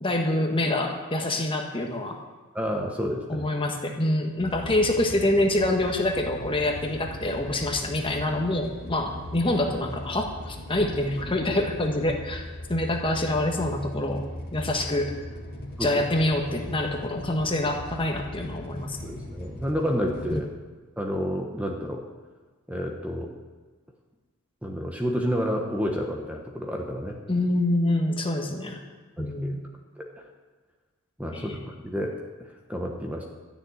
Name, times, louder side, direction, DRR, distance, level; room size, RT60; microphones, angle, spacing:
voice 1, 0.0-2.2 3.3-12.4 12.7-14.3 14.5-15.1 15.8-19.0 20.3-20.4 27.3-28.8 29.2-29.6 31.3-31.6, left 1 dB, 25° left, 2 dB, 1.5 m, -26 dB
voice 2, 2.5-3.5 15.8-15.9 19.0-20.5 21.0-22.0 22.7-23.3 24.6-27.2 29.2-29.5 30.0-30.2 31.2-32.2 32.7-33.2, equal, 5° right, 1 dB, 1.2 m, -30 dB
sound 1, 4.4-20.4, left 1 dB, 45° left, 2.1 m, -39 dB
13.0 x 6.9 x 9.4 m, 1.4 s
head